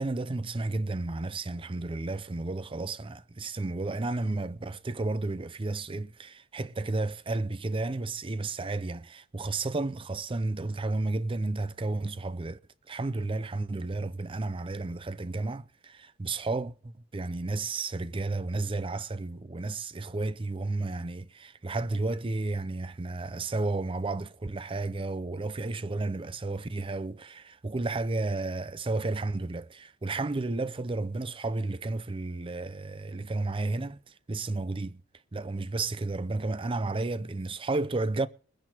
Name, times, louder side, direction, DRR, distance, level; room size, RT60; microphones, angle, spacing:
voice 1, 0.0-12.6 12.9-34.0 34.3-35.0 35.3-38.3, right 2 dB, 25° right, 0.5 m, -32 dB
23.0 x 10.5 x 3.0 m
head